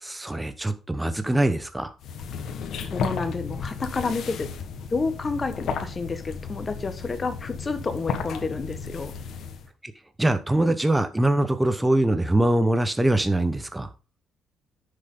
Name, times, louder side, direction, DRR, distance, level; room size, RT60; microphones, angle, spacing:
voice 1, 0.0-1.9 9.8-9.9 10.2-13.9, right 1 dB, 10° right, 1.0 m, -23 dB
sound 1, 2.0-9.7, left 6 dB, 70° left, 1.4 m, -34 dB
voice 2, 2.9-4.5 4.9-9.1, left 4 dB, 30° left, 1.4 m, -29 dB
9.9 x 6.7 x 3.8 m
cardioid pair, 90°, 0 cm